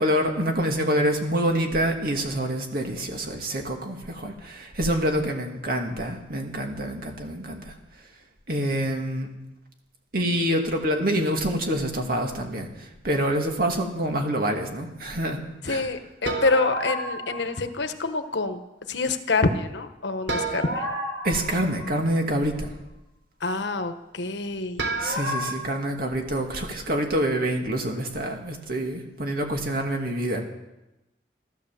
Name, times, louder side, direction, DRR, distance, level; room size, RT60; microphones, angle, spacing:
voice 1, 0.0-7.7 8.5-9.3 10.1-15.4 15.7-15.9 21.2-22.7 25.0-30.4, right 1 dB, 55° right, 3 dB, 2.4 m, -26 dB
voice 2, 15.6-18.6 18.9-20.9 23.4-24.9, left 3 dB, 90° left, 8 dB, 1.3 m, -26 dB
sound 1, 16.2-17.6 20.3-22.2 24.8-25.5, right 1 dB, 80° right, 3.6 m, -30 dB
13.5 x 13.5 x 7.5 m, 0.97 s
head